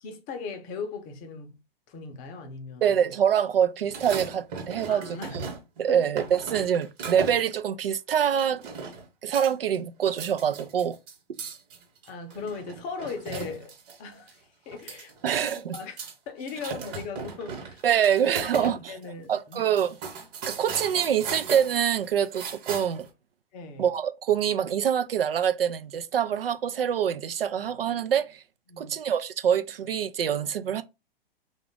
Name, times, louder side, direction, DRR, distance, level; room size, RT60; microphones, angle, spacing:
voice 1, 0.0-1.6 1.9-3.0 4.9-5.4 5.9-6.1 11.3-11.4 12.1-17.8 18.5-19.7 23.5-23.9 28.7-29.0, left 5 dB, 25° left, 0.6 m, -39 dB
voice 2, 2.8-5.2 5.8-8.6 9.2-11.0 15.2-15.8 17.8-18.9 19.3-20.0 20.4-23.1 23.8-28.4 28.8-30.8, right 9 dB, 70° right, 0.6 m, -25 dB
sound 1, 3.8-5.8 6.2-7.6 8.4-9.1 9.3-9.8 10.1-14.0 14.3-14.4 14.7-16.1 16.4-18.8 19.0-19.1 19.5-23.1, right 5 dB, 30° right, 1.3 m, -37 dB
3.7 x 2.4 x 3.7 m
figure-of-eight pair, 105°, 30 cm